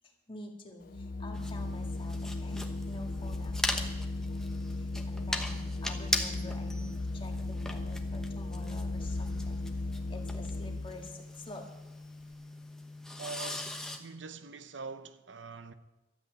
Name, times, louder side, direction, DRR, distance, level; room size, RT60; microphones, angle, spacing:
voice 1, 0.0-9.6 10.1-11.7, left 1 dB, 30° left, 1.9 m, -48 dB
Organ, 0.8-11.1, left 2 dB, 50° left, 0.5 m, -36 dB
sound 1, 1.3-14.0, left 1 dB, 5° left, 1.0 m, -39 dB
voice 2, 13.2-15.7, right 3 dB, 75° right, 0.8 m, -44 dB
13.0 x 8.6 x 9.0 m
head